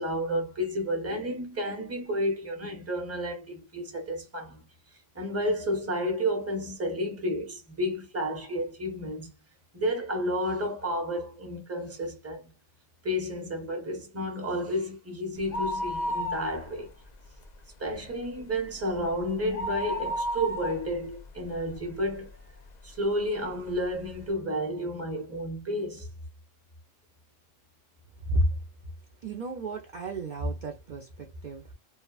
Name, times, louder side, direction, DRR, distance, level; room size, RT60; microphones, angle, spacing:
voice 1, 0.0-4.6 5.1-9.3 9.7-12.5 13.0-16.9 17.8-22.3 22.8-26.1, equal, 15° right, 0.7 m, -31 dB
sound 1, 15.4-17.0 17.3-17.4 17.9-22.3 22.8-22.9 23.7-23.8 24.0-24.1, left 1 dB, 50° left, 0.5 m, -33 dB
voice 2, 29.2-31.7, right 1 dB, 55° right, 0.6 m, -31 dB
2.9 x 2.2 x 2.3 m
omnidirectional pair, 1.3 m